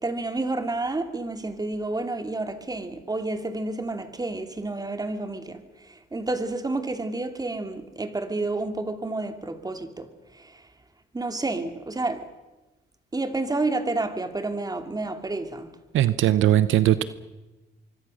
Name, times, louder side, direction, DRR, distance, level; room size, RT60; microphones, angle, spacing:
voice 1, 0.0-10.6 11.1-12.2 13.1-15.7, right 2 dB, 20° right, 2.7 m, -30 dB
voice 2, 15.9-17.0, right 12 dB, 80° right, 1.0 m, -19 dB
24.5 x 24.0 x 6.6 m
cardioid pair, 90°, 20 cm